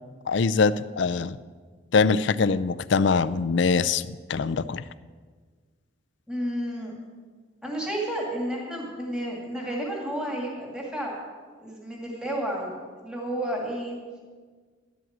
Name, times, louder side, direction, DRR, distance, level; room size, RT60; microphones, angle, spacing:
voice 1, 0.3-1.4 1.9-4.8, left 4 dB, 60° left, 15 dB, 0.4 m, -23 dB
voice 2, 6.3-6.9 7.6-11.1 11.6-12.7 13.0-14.0, right 1 dB, 5° right, -2 dB, 2.3 m, -31 dB
12.0 x 7.8 x 7.9 m, 1.5 s
head